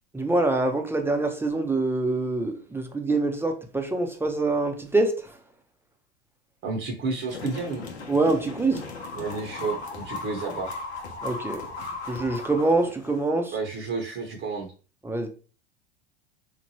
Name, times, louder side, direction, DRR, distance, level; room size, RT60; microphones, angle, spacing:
voice 1, 0.1-5.4 8.1-8.8 11.2-11.7 12.0-13.6 15.0-15.3, right 2 dB, 5° right, 0.5 m, -25 dB
voice 2, 6.6-7.9 9.1-10.8 13.5-14.7, right 4 dB, 40° right, 0.7 m, -31 dB
sound 1, 7.3-13.3, left 3 dB, 90° left, 0.7 m, -37 dB
3.1 x 2.1 x 2.7 m
hypercardioid pair, 85°, 32 cm